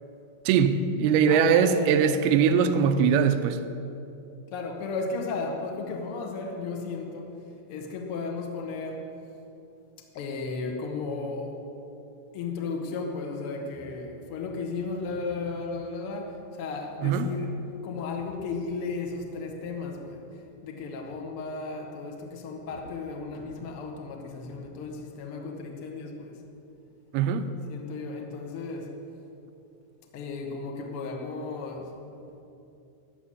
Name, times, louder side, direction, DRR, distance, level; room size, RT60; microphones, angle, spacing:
voice 1, 0.5-3.6 17.0-17.3 27.1-27.5, right 7 dB, 90° right, 2.6 m, -22 dB
voice 2, 1.3-2.0 4.5-7.4 7.7-9.1 10.1-11.6 12.3-26.4 27.7-28.9 30.1-32.0, left 4 dB, 70° left, 1.3 m, -34 dB
14.0 x 5.9 x 9.9 m
omnidirectional pair, 4.4 m